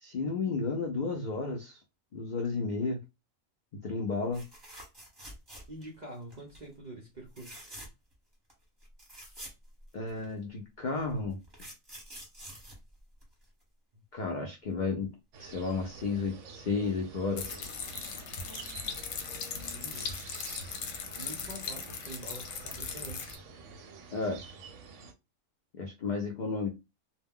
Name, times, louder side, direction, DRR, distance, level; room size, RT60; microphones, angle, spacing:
voice 1, 0.0-1.8 2.1-3.0 3.8-4.4 9.9-11.4 14.1-15.1 15.4-17.6 24.1-24.4 25.8-26.7, left 4 dB, 65° left, 0.4 m, -32 dB
sound 1, 4.3-6.0 6.3-6.6 7.3-8.1 8.5-8.6 8.8-10.3 11.1-13.6 15.5-15.7 16.0-16.1, right 1 dB, 20° right, 0.9 m, -48 dB
voice 2, 5.7-7.7 13.9-14.0 19.7-20.2 21.2-23.4, right 2 dB, 50° right, 0.5 m, -46 dB
sound 2, 15.3-25.1, right 5 dB, 70° right, 0.9 m, -49 dB
sound 3, 17.4-23.4, left 6 dB, 80° left, 1.0 m, -39 dB
2.3 x 2.1 x 3.5 m
omnidirectional pair, 1.4 m